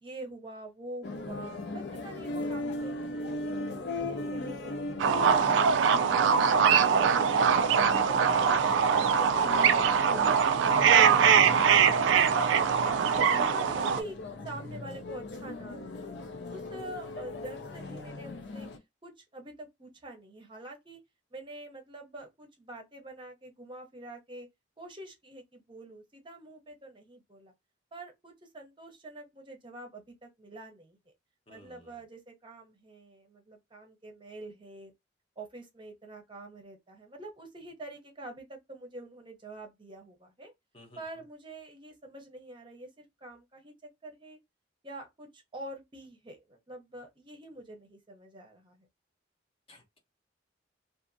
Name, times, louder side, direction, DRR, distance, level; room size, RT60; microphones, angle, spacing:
voice 1, 0.0-4.7 5.2-8.6 9.0-12.6 13.1-14.2 14.4-16.2 16.5-18.7 19.0-21.0 21.3-24.5 24.8-27.5 27.9-31.1 31.5-34.9 35.4-40.5 41.0-44.4 44.8-48.9, right 2 dB, 25° right, 0.7 m, -46 dB
sound 1, 1.0-18.8, left 2 dB, 65° left, 0.5 m, -38 dB
sound 2, 5.0-14.0, right 7 dB, 75° right, 0.3 m, -23 dB
voice 2, 31.5-31.9 40.7-41.0 49.7-50.0, left 1 dB, 30° left, 0.8 m, -55 dB
2.5 x 2.5 x 2.5 m
head